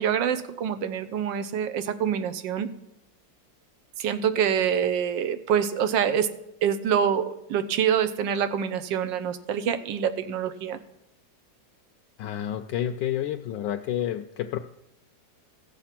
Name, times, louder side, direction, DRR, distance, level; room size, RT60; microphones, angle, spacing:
voice 1, 0.0-2.7 4.0-6.3 6.6-10.8, right 8 dB, 85° right, 12 dB, 1.4 m, -26 dB
voice 2, 12.2-14.6, left 11 dB, 90° left, 4 dB, 1.3 m, -29 dB
15.5 x 6.9 x 5.8 m, 0.85 s
omnidirectional pair, 1.9 m